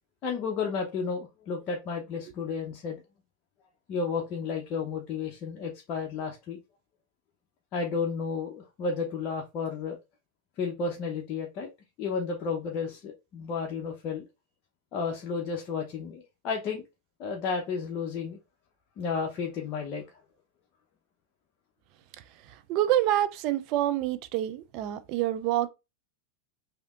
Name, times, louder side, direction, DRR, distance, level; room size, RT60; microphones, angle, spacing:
voice 1, 0.2-3.0 3.9-6.6 7.7-10.0 10.6-11.7 12.0-14.3 14.9-16.8 17.2-18.4 19.0-20.0, left 5 dB, 45° left, 0.6 m, -32 dB
voice 2, 22.7-25.7, right 13 dB, 50° right, 0.4 m, -27 dB
3.3 x 2.7 x 2.3 m
hypercardioid pair, 110°, 0 cm